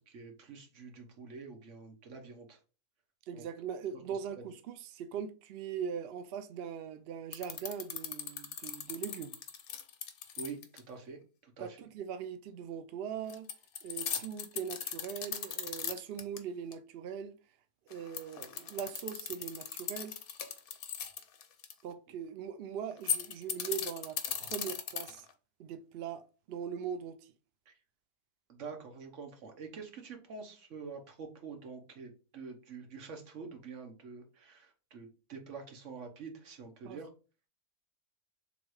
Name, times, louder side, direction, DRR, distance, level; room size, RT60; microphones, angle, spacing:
voice 1, 0.1-2.6 3.3-3.4 3.9-4.2 10.4-11.8 27.7-27.8 28.5-37.1, right 5 dB, 55° right, 1.3 m, -47 dB
voice 2, 3.3-9.3 11.6-13.5 13.8-17.3 17.9-20.1 21.8-25.3 25.6-27.3 36.8-37.0, right 7 dB, 75° right, 0.5 m, -41 dB
sound 1, 7.3-10.8 13.3-16.4 16.7-16.8 17.9-21.7 22.9-25.3, left 8 dB, 75° left, 1.1 m, -38 dB
3.5 x 3.1 x 4.7 m
omnidirectional pair, 1.6 m